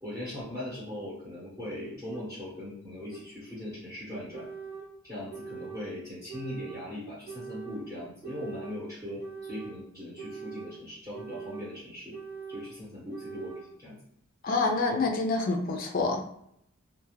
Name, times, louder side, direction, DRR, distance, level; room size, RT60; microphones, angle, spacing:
voice 1, 0.0-4.5 5.0-12.2 12.5-14.0, left 1 dB, 20° right, -9 dB, 0.8 m, -40 dB
sound 1, 2.1-2.2 3.1-3.2 4.1-4.9 5.3-5.9 6.3-6.8 7.3-7.8 8.2-8.8 9.2-9.8 10.2-10.7 11.1-11.7 12.1-12.7 13.1-13.7, right 6 dB, 20° left, 0.7 m, -42 dB
voice 2, 14.4-16.2, left 3 dB, 40° left, 3 dB, 0.4 m, -27 dB
2.3 x 2.3 x 3.1 m, 0.73 s
head